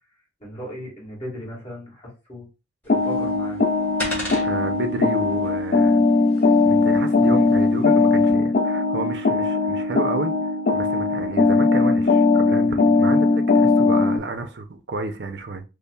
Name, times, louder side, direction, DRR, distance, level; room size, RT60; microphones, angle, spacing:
voice 1, 0.4-2.5 2.8-3.6, equal, 30° left, 1.6 m, -36 dB
sound 1, 2.8-8.3, equal, 10° left, 1.4 m, -38 dB
sound 2, 2.9-14.2, left 3 dB, 50° left, 0.4 m, -19 dB
voice 2, 4.4-6.0 6.6-10.3 10.7-15.6, right 3 dB, 60° right, 0.5 m, -31 dB
5.3 x 2.1 x 2.2 m
head